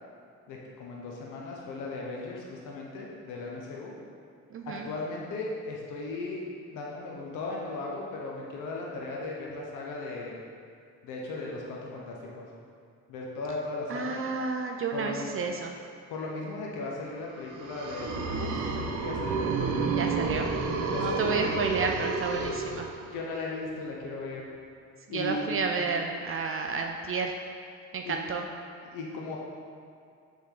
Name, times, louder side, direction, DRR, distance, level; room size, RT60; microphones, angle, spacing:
voice 1, 0.5-3.9 4.6-6.4 6.7-10.4 11.0-12.5 13.1-14.2 14.9-15.5 16.1-19.4 20.9-21.4 23.0-24.5 25.1-25.7 28.0-28.2 28.8-29.4, left 2 dB, 90° left, -2 dB, 0.8 m, -37 dB
voice 2, 4.5-4.9 13.9-15.7 20.0-20.5 20.9-22.9 25.1-27.3 27.9-28.5, right 4 dB, 45° right, 3 dB, 0.4 m, -31 dB
sound 1, 17.4-23.3, right 4 dB, 85° right, 0.7 m, -30 dB
7.2 x 3.6 x 3.7 m, 2.3 s
cardioid pair, 90°, 30 cm